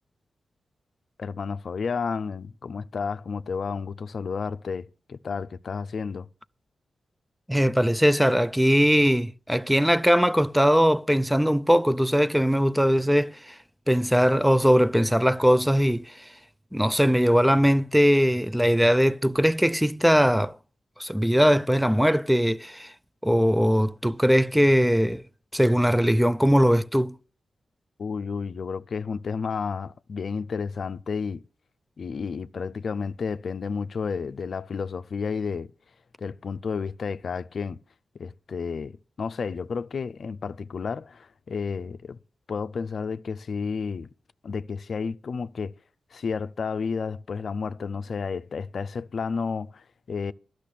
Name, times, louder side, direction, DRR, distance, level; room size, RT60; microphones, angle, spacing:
voice 1, 1.2-6.3 28.0-31.4 32.0-35.7 36.2-37.8 38.1-42.2 42.5-44.1 44.4-45.7 46.1-50.3, left 5 dB, 65° left, 0.5 m, -31 dB
voice 2, 7.5-13.6 13.9-16.2 16.7-20.6 21.0-22.9 23.2-25.2 25.5-27.1, equal, 5° right, 0.5 m, -20 dB
12.0 x 6.4 x 8.4 m
supercardioid pair, 45°, 0 cm